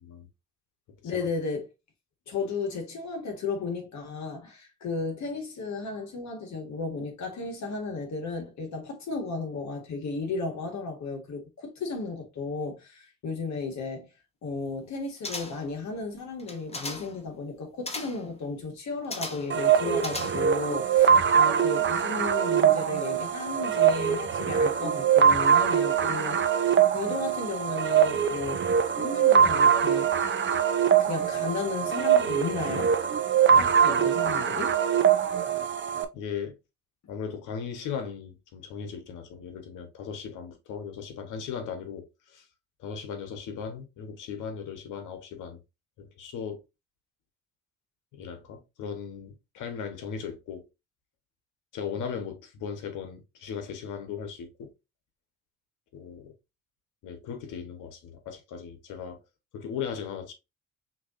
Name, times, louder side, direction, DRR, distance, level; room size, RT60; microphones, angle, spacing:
voice 1, 1.0-1.7 2.3-14.1 14.4-26.4 26.7-28.6 29.0-30.1 31.0-32.9 33.5-34.8, left 4 dB, 65° left, 1.8 m, -34 dB
sound 1, 15.2-15.8 16.4-17.2 17.9-18.3 19.1-19.6 20.0-20.6 21.0-21.1, left 2 dB, 20° left, 1.1 m, -37 dB
sound 2, 19.5-36.0, right 8 dB, 40° right, 0.7 m, -23 dB
voice 2, 36.1-36.6 37.1-42.5 42.8-45.6 46.0-46.6 48.1-50.7 51.7-54.7 55.9-56.3 57.0-59.2 59.5-60.3, left 7 dB, 85° left, 1.3 m, -37 dB
5.9 x 3.0 x 2.6 m
cardioid pair, 90°, 30 cm